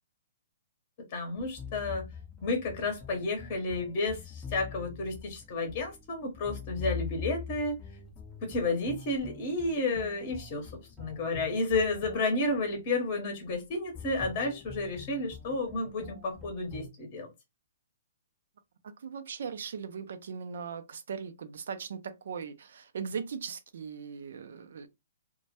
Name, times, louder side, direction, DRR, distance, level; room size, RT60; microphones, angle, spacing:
voice 1, 1.1-2.0 2.4-7.8 8.4-10.7 11.0-17.3, left 2 dB, 40° left, 0.8 m, -31 dB
sound 1, 1.4-16.9, left 6 dB, 10° left, 0.6 m, -44 dB
voice 2, 18.8-24.9, right 6 dB, 70° right, 0.4 m, -39 dB
2.1 x 2.1 x 2.8 m
hypercardioid pair, 130°, 0 cm